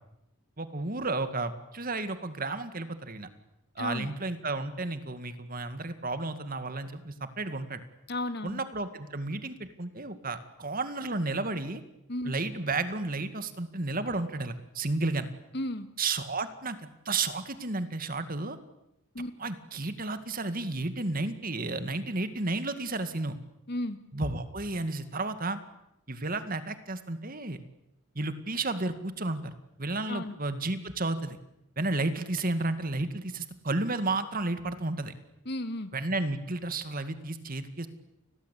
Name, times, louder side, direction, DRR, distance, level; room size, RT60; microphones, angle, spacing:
voice 1, 0.6-3.3 3.8-7.8 8.4-11.8 12.2-15.3 16.0-16.8 17.1-18.6 19.4-23.4 24.1-25.6 26.1-27.6 28.2-29.5 29.8-31.4 31.8-35.1 35.9-37.9, right 2 dB, 45° right, 10 dB, 2.2 m, -32 dB
voice 2, 3.8-4.1 8.1-8.6 12.1-12.3 15.5-15.9 19.1-19.3 23.7-24.0 30.1-30.3 35.5-35.9, left 1 dB, 55° left, 10 dB, 2.0 m, -33 dB
29.5 x 21.5 x 8.5 m, 0.85 s
head